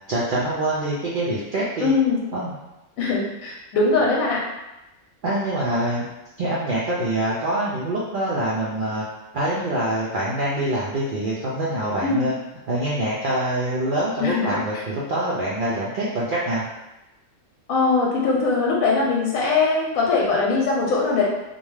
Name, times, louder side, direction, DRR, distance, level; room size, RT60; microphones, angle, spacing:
voice 1, 0.1-1.9 2.3-2.5 5.2-6.1 6.4-9.0 9.3-12.3 12.7-16.6, right 1 dB, 85° right, -7 dB, 0.4 m, -25 dB
voice 2, 1.8-2.2 3.0-4.4 12.0-12.3 14.2-14.6 17.7-21.2, left 4 dB, 85° left, -3 dB, 1.0 m, -21 dB
2.5 x 2.2 x 3.1 m, 0.99 s
omnidirectional pair, 1.4 m